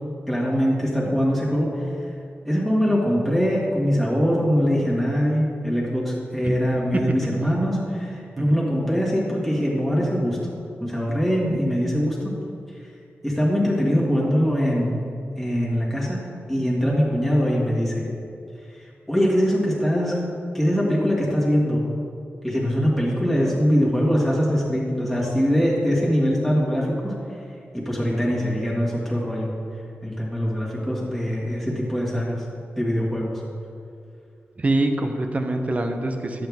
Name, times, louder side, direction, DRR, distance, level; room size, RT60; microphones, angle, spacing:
voice 1, 0.3-1.7 2.4-10.4 10.8-12.4 13.2-15.0 15.4-16.2 16.5-18.1 19.1-20.2 20.5-21.8 22.4-27.2 27.7-29.5 30.0-32.4 32.8-33.4, equal, ahead, -6 dB, 1.9 m, -22 dB
voice 2, 34.6-36.5, right 2 dB, 35° right, 5 dB, 0.8 m, -24 dB
11.0 x 7.9 x 3.6 m, 2.5 s
wide cardioid pair, 130°, 4 cm